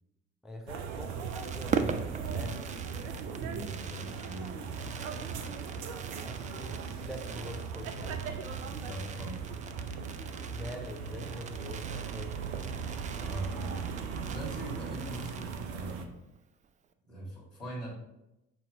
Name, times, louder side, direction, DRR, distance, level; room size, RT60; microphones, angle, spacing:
voice 1, 0.4-2.9 6.2-8.2 10.5-12.6, left 1 dB, ahead, 2 dB, 0.7 m, -44 dB
sound 1, 0.7-16.1, right 6 dB, 65° right, 0.6 m, -38 dB
Fireworks, 0.9-16.1 16.3-16.4 16.6-16.9, right 6 dB, 20° right, 0.4 m, -42 dB
voice 2, 3.4-4.9 8.8-9.4 13.2-13.8 14.3-16.1 17.1-17.9, right 1 dB, 85° left, -8 dB, 1.9 m, -41 dB
8.8 x 3.0 x 3.6 m, 0.92 s
figure-of-eight pair, 45°, 37 cm